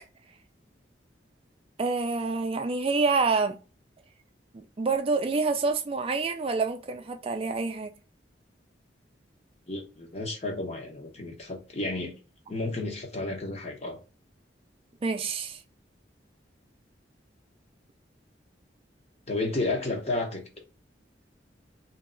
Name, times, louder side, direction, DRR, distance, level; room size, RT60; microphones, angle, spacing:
voice 1, 1.8-3.6 4.5-7.9 15.0-15.6, right 4 dB, 30° right, 0.3 m, -27 dB
voice 2, 9.7-12.1 12.5-14.0 19.3-20.4, left 2 dB, 35° left, 0.9 m, -32 dB
3.2 x 2.8 x 3.7 m
head